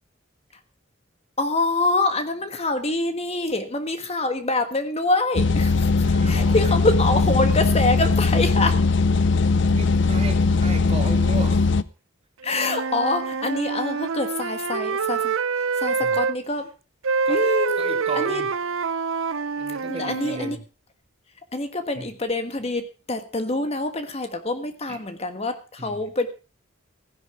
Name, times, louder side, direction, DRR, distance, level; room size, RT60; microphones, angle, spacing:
voice 1, 1.4-8.8 12.4-16.7 17.3-18.4 19.8-20.6 21.5-26.3, left 2 dB, 30° left, 8 dB, 1.5 m, -25 dB
sound 1, 5.4-11.8, left 4 dB, 60° left, 0.6 m, -20 dB
voice 2, 6.0-6.8 9.7-11.6 16.0-16.2 17.3-17.4 17.8-18.6 19.6-20.6 21.9-22.1 24.9-25.0 25.8-26.1, right 2 dB, 30° right, 6 dB, 2.1 m, -35 dB
Wind instrument woodwind instrument, 12.4-16.4 17.0-20.6, right 5 dB, 90° right, 0.7 m, -26 dB
16.0 x 10.5 x 5.0 m, 0.34 s
head